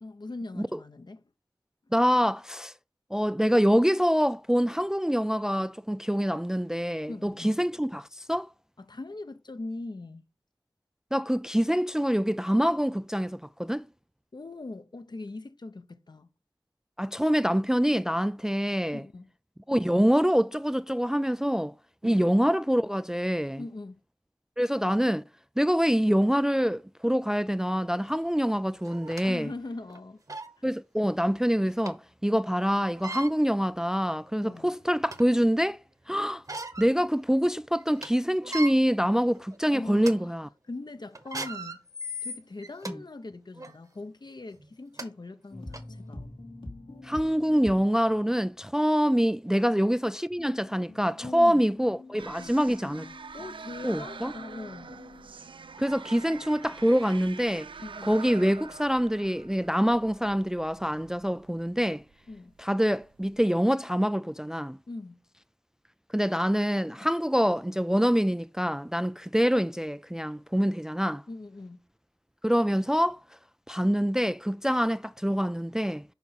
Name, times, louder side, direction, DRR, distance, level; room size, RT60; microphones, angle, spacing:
voice 1, 0.0-1.2 7.1-7.6 8.8-10.2 14.3-16.3 18.9-19.3 22.0-22.2 23.6-24.0 29.3-30.2 30.6-30.7 34.4-34.7 39.7-40.4 40.7-41.8 42.2-46.2 49.5-49.9 51.2-51.6 52.4-55.0 57.8-58.2 62.3-62.6 64.9-65.2 71.3-71.8, left 2 dB, 55° left, 0.8 m, -41 dB
voice 2, 1.9-2.7 3.1-8.5 11.1-13.8 17.0-19.0 19.7-21.7 22.0-23.6 24.6-25.2 25.6-29.5 30.6-35.8 36.1-36.4 36.8-40.5 47.0-53.1 53.8-54.3 55.8-57.7 58.1-62.0 62.6-64.8 66.1-71.2 72.4-73.2 73.7-76.0, equal, 5° right, 0.3 m, -25 dB
sound 1, 28.1-28.2 28.9-29.3 29.9-30.0 30.3-30.5 31.9-32.0 32.9-33.3 34.1-34.2 34.6-35.3 36.3-36.9 37.3-37.4 37.8-38.1 38.4-38.7 39.4-39.6 40.0-40.1 41.2-42.9 43.6-43.7 44.6-44.7 45.0-45.1 45.7-45.8, right 1 dB, 40° right, 1.2 m, -37 dB
sound 2, 45.5-48.7 50.4-55.3, left 2 dB, 80° left, 2.3 m, -46 dB
sound 3, 52.2-63.4, right 5 dB, 80° right, 0.4 m, -45 dB
7.1 x 5.4 x 5.7 m
wide cardioid pair, 55°, 9 cm